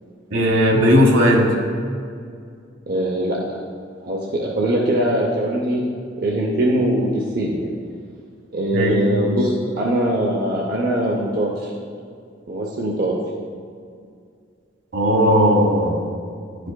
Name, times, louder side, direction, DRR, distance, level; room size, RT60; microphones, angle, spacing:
voice 1, 0.3-1.5 8.7-9.0 14.9-16.0, equal, 75° right, 0 dB, 1.2 m, -16 dB
voice 2, 2.9-3.4 4.0-5.8 6.2-7.7 8.5-11.7 12.5-13.2, right 1 dB, 50° right, -3 dB, 0.6 m, -21 dB
10.5 x 4.9 x 2.2 m, 2.2 s
head